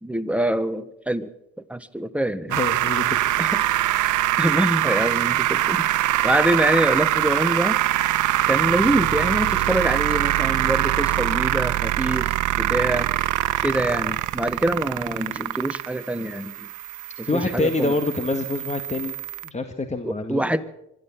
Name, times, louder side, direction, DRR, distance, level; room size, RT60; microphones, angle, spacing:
voice 1, 0.0-1.3 1.7-2.6 3.4-3.6 4.2-7.8 8.5-12.3 12.6-13.1 13.6-16.7 17.2-17.9 20.0-20.6, right 1 dB, 5° right, 10 dB, 1.4 m, -25 dB
voice 2, 2.5-3.2 3.4-3.5 17.2-19.2 19.4-20.5, left 2 dB, 25° left, 7 dB, 1.8 m, -26 dB
sound 1, 2.5-19.5, right 14 dB, 80° right, 1.1 m, -23 dB
24.5 x 12.5 x 8.8 m, 0.83 s
cardioid pair, 90°, 30 cm